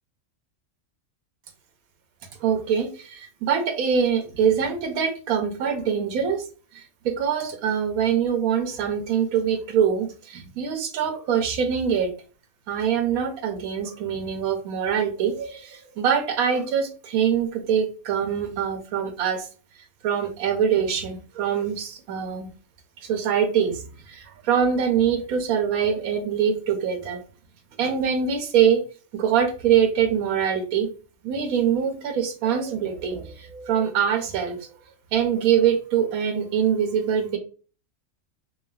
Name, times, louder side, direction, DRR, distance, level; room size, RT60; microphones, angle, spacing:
voice 1, 2.4-6.4 6.7-12.1 12.7-19.5 20.0-22.5 23.0-27.2 27.8-28.8 29.1-30.9 31.2-34.6 35.1-37.4, right 8 dB, 85° right, 6 dB, 1.1 m, -24 dB
3.3 x 2.2 x 2.2 m, 0.37 s
omnidirectional pair, 1.5 m